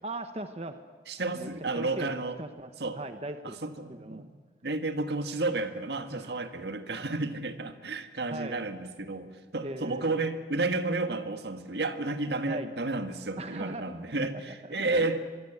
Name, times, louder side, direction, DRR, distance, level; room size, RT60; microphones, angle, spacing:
voice 1, 0.0-0.8 1.2-1.5 1.7-2.1 2.4-3.6 3.9-4.2 6.1-6.4 8.3-8.6 9.6-10.2 12.4-12.7 13.4-14.0 14.6-15.2, right 2 dB, 35° right, 8 dB, 1.1 m, -39 dB
voice 2, 1.1-2.4 2.8-3.0 3.4-4.3 4.6-15.2, right 2 dB, 75° right, 8 dB, 1.7 m, -32 dB
25.0 x 22.5 x 8.1 m, 1.4 s
head